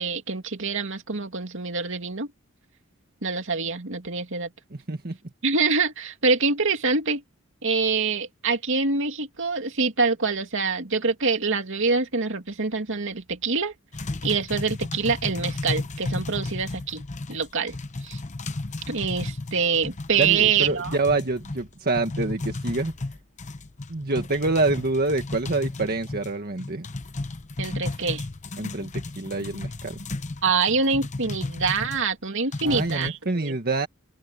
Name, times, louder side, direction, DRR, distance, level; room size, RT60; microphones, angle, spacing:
voice 1, 0.0-2.3 3.2-4.5 5.4-7.2 7.6-13.7 14.2-17.0 17.3-17.8 18.0-18.2 18.9-21.0 27.6-28.3 30.4-33.6, right 4 dB, 65° right, 2.5 m, -25 dB
voice 2, 4.7-5.2 20.2-22.9 23.9-26.9 28.6-30.0 32.6-33.9, right 2 dB, 50° right, 1.7 m, -26 dB
sound 1, 13.9-32.0 32.5-33.1, left 2 dB, 35° left, 0.9 m, -34 dB
head